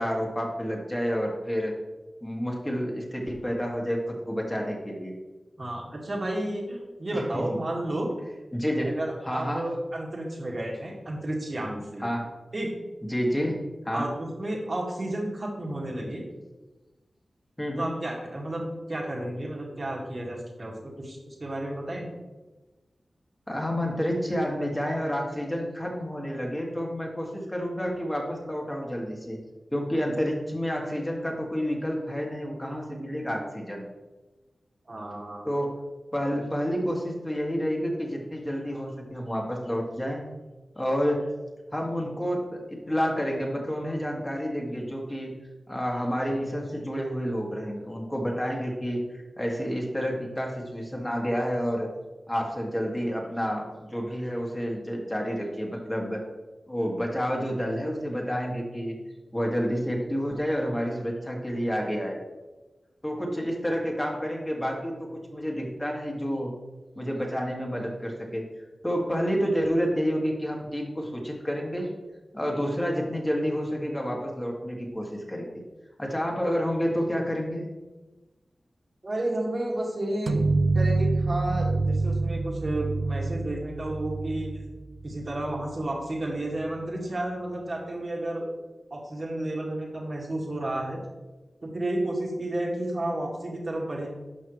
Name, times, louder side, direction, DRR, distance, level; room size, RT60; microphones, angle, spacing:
voice 1, 0.0-1.7 2.2-5.1 7.1-7.4 8.5-8.9 9.3-9.6 12.0-12.3 13.1-13.6 13.8-14.1 17.6-17.9 23.5-29.4 29.7-33.8 35.5-35.7 36.1-40.2 40.8-41.3 41.7-45.4 45.7-49.0 49.4-51.9 52.3-56.2 56.7-59.0 59.3-62.2 63.0-66.5 67.0-68.4 68.8-71.9 72.3-75.5 76.0-77.7, equal, 15° left, -1 dB, 2.3 m, -29 dB
voice 2, 5.6-8.1 8.9-12.1 12.5-12.7 13.9-16.2 17.8-22.1 34.9-35.5 79.0-80.4 80.7-84.6 85.0-88.5 88.9-91.0 91.6-94.1, right 1 dB, 50° right, -1 dB, 2.1 m, -32 dB
sound 1, 80.3-85.8, right 3 dB, 75° right, 0.4 m, -27 dB
11.5 x 5.7 x 3.3 m, 1.2 s
cardioid pair, 50°, 0 cm